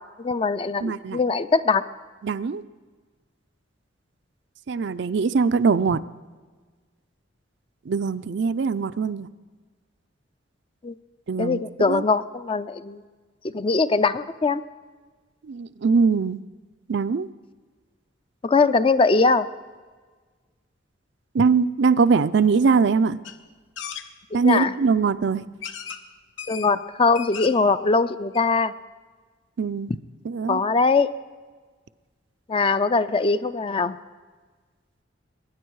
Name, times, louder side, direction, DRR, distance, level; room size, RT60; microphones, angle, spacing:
voice 1, 0.2-1.8 10.8-10.9 11.4-13.0 13.5-14.6 18.4-19.5 24.4-24.7 26.5-28.7 29.9-30.0 30.5-31.1 32.5-34.0, left 4 dB, 30° left, 13 dB, 0.4 m, -21 dB
voice 2, 0.8-1.2 2.2-2.6 4.7-6.0 7.9-9.3 11.3-12.0 15.5-16.4 16.9-17.3 21.3-23.2 24.3-25.4 29.6-29.9 30.3-30.6, right 5 dB, 65° right, 13 dB, 0.4 m, -22 dB
sound 1, 23.2-23.4 23.8-24.1 25.0-25.1 25.6-26.0 26.4-26.7 27.0-27.7 28.1-28.2 28.3-28.4, left 7 dB, 80° left, 0.8 m, -35 dB
21.0 x 9.8 x 4.7 m, 1.4 s
head